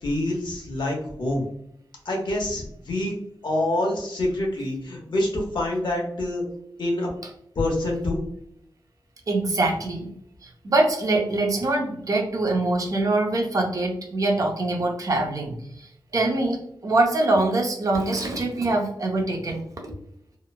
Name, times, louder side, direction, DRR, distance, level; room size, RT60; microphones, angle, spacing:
voice 1, 0.0-1.5 2.0-3.2 3.4-6.4 6.8-7.1 7.5-8.2, left 1 dB, 70° left, 0 dB, 0.9 m, -26 dB
voice 2, 9.3-10.1 10.4-19.6, right 2 dB, 45° right, 1 dB, 0.6 m, -24 dB
2.9 x 2.0 x 2.2 m, 0.72 s
wide cardioid pair, 105°, 8 cm